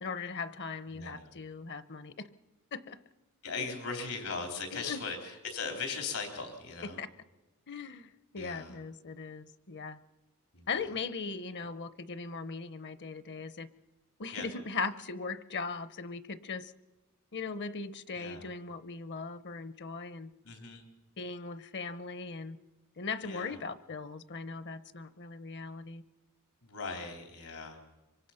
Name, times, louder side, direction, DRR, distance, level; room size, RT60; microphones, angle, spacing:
voice 1, 0.0-2.3 2.7-3.0 4.7-5.0 7.0-7.1 7.7-10.0 10.7-13.7 14.2-16.7 17.3-20.3 21.2-22.6 23.0-26.0, left 4 dB, 50° left, 15 dB, 0.8 m, -39 dB
voice 2, 0.9-1.3 3.4-7.0 8.3-8.7 10.5-10.7 11.6-11.7 14.3-14.5 18.1-18.5 20.4-20.9 23.2-23.6 26.6-27.8, left 4 dB, 85° left, 4 dB, 3.5 m, -39 dB
25.0 x 24.0 x 5.8 m, 1.1 s
head